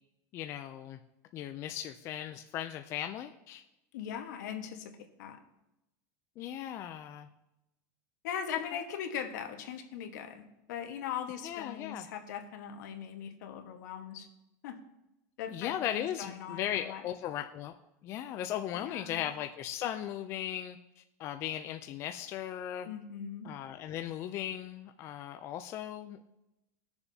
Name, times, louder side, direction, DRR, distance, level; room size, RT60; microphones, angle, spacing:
voice 1, 0.3-1.0 1.3-3.6 6.4-7.3 11.4-12.0 15.5-17.7 18.0-20.8 21.2-22.9 23.4-26.3, left 11 dB, 30° left, 7 dB, 0.3 m, -37 dB
voice 2, 3.9-4.9 5.2-5.4 8.2-14.3 14.6-14.8 15.4-17.0 18.7-19.3 22.8-23.5, left 8 dB, 75° left, 5 dB, 1.3 m, -40 dB
18.5 x 6.9 x 2.7 m, 0.90 s
supercardioid pair, 170°, 10 cm